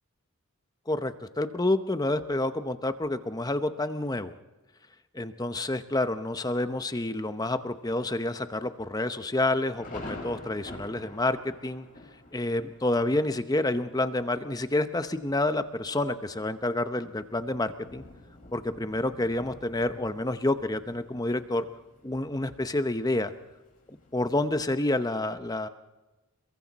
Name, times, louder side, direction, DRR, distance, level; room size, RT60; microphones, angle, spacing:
voice 1, 0.9-4.3 5.1-11.9 12.3-18.0 18.5-21.6 22.0-23.3 23.9-25.7, left 2 dB, 15° left, 10 dB, 0.8 m, -29 dB
Thunder, 5.9-6.2 6.7-6.8 7.1-7.5 7.9-8.0 8.7-24.9, left 2 dB, 35° left, 5.4 m, -49 dB
28.5 x 22.5 x 4.1 m, 1.1 s
head